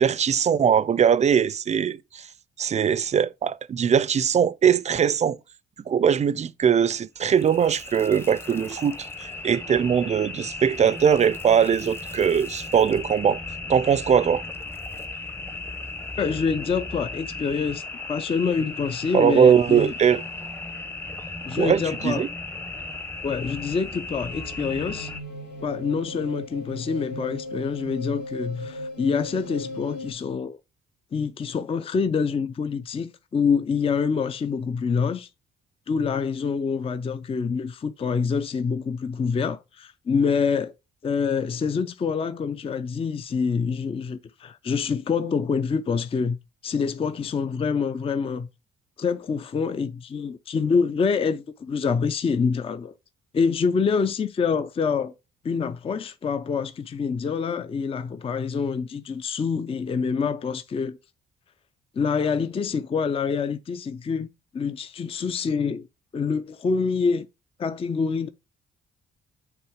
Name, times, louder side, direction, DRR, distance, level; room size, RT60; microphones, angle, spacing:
voice 1, 0.0-2.3 2.6-5.4 5.9-13.4 13.7-14.4 19.1-20.2 21.6-22.3, right 8 dB, 35° right, 0.4 m, -21 dB
sound 1, 7.2-25.2, left 3 dB, 10° left, 0.8 m, -36 dB
voice 2, 16.2-17.8 18.1-19.9 21.5-22.3 23.2-25.1 25.6-30.6 31.1-35.3 35.9-40.7 41.0-46.4 46.6-48.5 49.0-52.9 53.3-55.1 55.4-61.0 62.0-64.3 64.5-65.9 66.1-67.3 67.6-68.3, left 5 dB, 30° left, 0.4 m, -26 dB
sound 2, 24.3-30.1, left 1 dB, 60° left, 1.5 m, -37 dB
5.8 x 3.5 x 4.8 m
cardioid pair, 90°, 20 cm